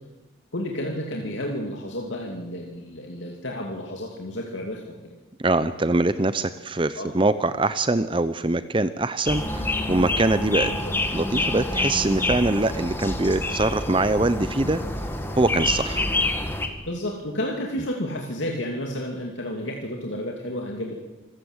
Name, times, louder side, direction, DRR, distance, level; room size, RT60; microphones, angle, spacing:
voice 1, 0.5-4.8 6.9-7.1 10.8-10.9 16.9-20.9, left 1 dB, 75° left, 0 dB, 2.7 m, -31 dB
voice 2, 5.4-10.7 11.1-14.8 15.3-16.1, right 2 dB, 25° right, 13 dB, 0.6 m, -23 dB
sound 1, 9.3-16.7, left 2 dB, 10° left, 1.8 m, -27 dB
26.5 x 15.0 x 8.1 m, 1.1 s
head